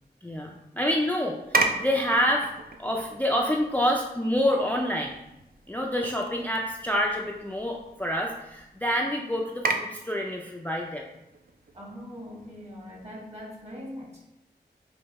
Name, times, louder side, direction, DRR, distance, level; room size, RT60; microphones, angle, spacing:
voice 1, 0.2-2.5 2.8-5.1 5.7-11.1, equal, 10° left, 0 dB, 0.4 m, -27 dB
sound 1, 1.4-13.4, right 3 dB, 55° right, 0.5 m, -36 dB
voice 2, 11.7-14.3, equal, 35° right, -4 dB, 1.4 m, -41 dB
4.6 x 2.7 x 3.0 m, 0.91 s
wide cardioid pair, 55°, 18 cm